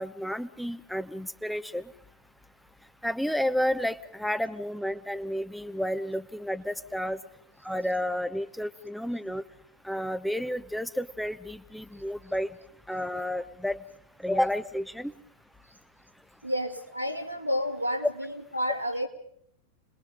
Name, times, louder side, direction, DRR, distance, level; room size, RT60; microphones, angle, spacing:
voice 1, 0.0-1.9 3.0-7.2 7.6-9.4 9.8-12.5 12.9-13.8 14.2-15.1, equal, ahead, 13 dB, 0.9 m, -31 dB
voice 2, 16.4-19.1, equal, 90° right, 3 dB, 2.7 m, -30 dB
30.0 x 21.0 x 5.2 m, 0.69 s
figure-of-eight pair, 90°, 0 cm